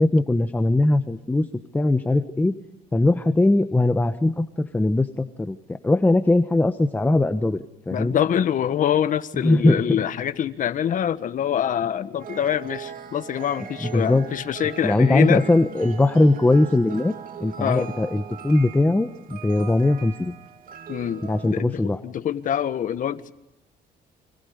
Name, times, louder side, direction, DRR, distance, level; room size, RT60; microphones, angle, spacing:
voice 1, 0.0-1.5 1.7-2.5 2.9-8.2 9.4-9.8 13.8-14.3 14.8-17.1 17.4-20.4 21.2-22.0, left 2 dB, 10° left, 10 dB, 1.1 m, -20 dB
voice 2, 7.9-15.4 17.6-17.9 20.9-23.3, left 9 dB, 50° left, 11 dB, 1.5 m, -25 dB
sound 1, 12.2-21.5, right 8 dB, 55° right, 2.5 m, -39 dB
29.0 x 26.0 x 5.2 m, 0.88 s
cardioid pair, 110°, 17 cm